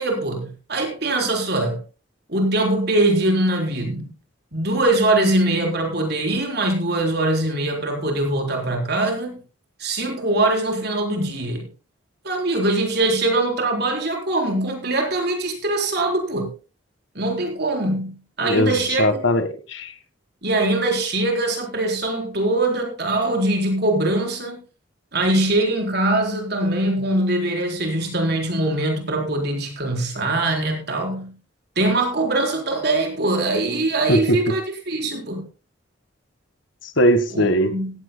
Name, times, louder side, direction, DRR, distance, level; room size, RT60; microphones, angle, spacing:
voice 1, 0.0-1.8 2.3-4.1 4.5-9.4 9.8-11.7 12.2-16.5 17.1-19.2 20.4-24.6 25.1-31.4 31.8-35.5 37.3-37.9, right 2 dB, 55° right, 4.2 m, -22 dB
voice 2, 18.4-19.9 34.1-34.2 37.0-37.7, equal, 75° left, 1.7 m, -19 dB
17.0 x 15.0 x 2.3 m
head